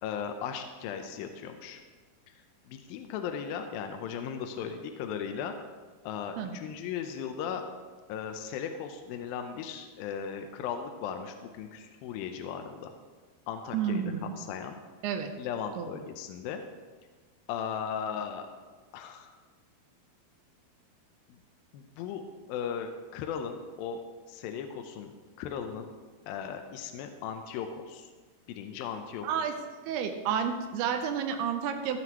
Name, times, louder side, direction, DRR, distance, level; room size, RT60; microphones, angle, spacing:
voice 1, 0.0-1.8 2.3-2.4 2.7-5.5 6.0-7.6 8.1-12.9 13.5-14.8 15.4-16.6 17.5-18.5 18.9-19.3 21.7-22.2 22.5-24.0 24.3-25.1 25.4-25.9 26.3-28.1 28.5-29.4, left 7 dB, 80° left, 6 dB, 2.2 m, -37 dB
voice 2, 13.7-14.3 15.0-15.3 15.8-15.9 29.2-29.5 29.9-32.0, right 7 dB, 90° right, 6 dB, 2.7 m, -30 dB
15.5 x 7.7 x 3.0 m, 1.4 s
omnidirectional pair, 4.7 m